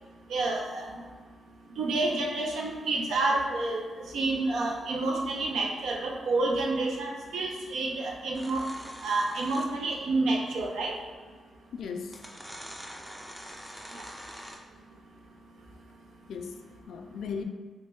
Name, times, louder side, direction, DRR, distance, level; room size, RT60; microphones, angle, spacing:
voice 1, 0.3-0.9 1.8-8.7 9.0-10.9 13.9-14.0, right 2 dB, 90° right, 0 dB, 0.6 m, -29 dB
sound 1, 8.3-9.9 11.2-11.3 12.1-14.8, equal, 10° right, 0.4 m, -45 dB
voice 2, 11.7-12.3 16.3-17.4, left 5 dB, 85° left, 6 dB, 0.3 m, -37 dB
3.0 x 3.0 x 3.4 m, 1.5 s
wide cardioid pair, 125°, 0 cm